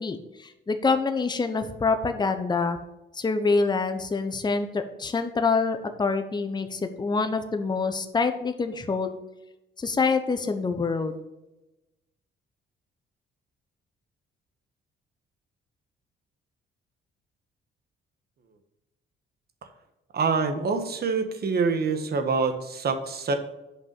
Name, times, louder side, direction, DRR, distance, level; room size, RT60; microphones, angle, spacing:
voice 1, 0.0-2.8 3.1-9.2 9.8-11.2, left 4 dB, 20° left, 8 dB, 0.8 m, -26 dB
voice 2, 20.1-23.4, right 4 dB, 55° right, 7 dB, 1.3 m, -26 dB
8.1 x 5.3 x 5.3 m, 0.97 s
cardioid pair, 90°, 20 cm